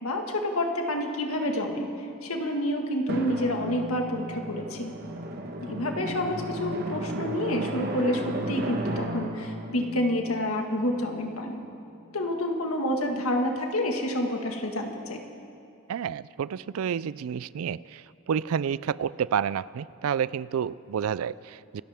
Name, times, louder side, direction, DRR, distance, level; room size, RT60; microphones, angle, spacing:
voice 1, 0.0-1.9 2.2-4.9 5.6-11.6 12.1-15.2, left 1 dB, 80° left, 3 dB, 1.8 m, -28 dB
Drum, 3.1-11.4, right 1 dB, 45° right, 1.3 m, -35 dB
voice 2, 15.9-21.8, right 8 dB, 80° right, 19 dB, 0.3 m, -30 dB
27.5 x 13.0 x 3.6 m, 2.5 s
head